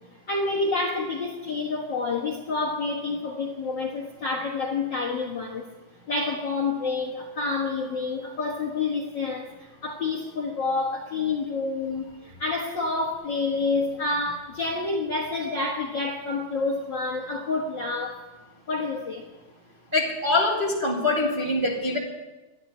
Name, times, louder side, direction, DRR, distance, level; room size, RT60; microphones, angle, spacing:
voice 1, 0.3-5.7 6.1-18.2 18.7-19.3, left 3 dB, 50° left, 0 dB, 1.5 m, -28 dB
voice 2, 19.9-22.0, left 2 dB, 20° right, -3 dB, 1.7 m, -24 dB
13.0 x 10.0 x 9.8 m, 1.2 s
omnidirectional pair, 3.9 m